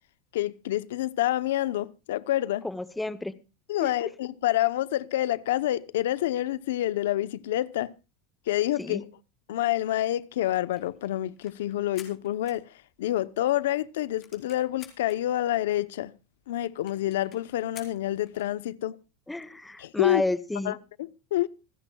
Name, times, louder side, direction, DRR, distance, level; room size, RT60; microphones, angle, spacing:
voice 1, 0.3-2.6 3.7-7.9 8.5-9.1 9.5-12.7 13.0-16.1 16.5-18.9 19.8-20.2 20.6-21.5, left 14 dB, 85° left, 0.7 m, -28 dB
voice 2, 2.6-3.3 3.8-3.9 8.8-9.0 19.3-20.8, left 2 dB, 5° left, 0.9 m, -31 dB
sound 1, 10.7-13.2 13.6-13.7 13.9-15.2 15.8-15.9 16.1-16.2 16.4-16.5 16.9-18.5, left 8 dB, 35° left, 4.1 m, -51 dB
26.5 x 11.0 x 2.3 m
supercardioid pair, 140°, 0 cm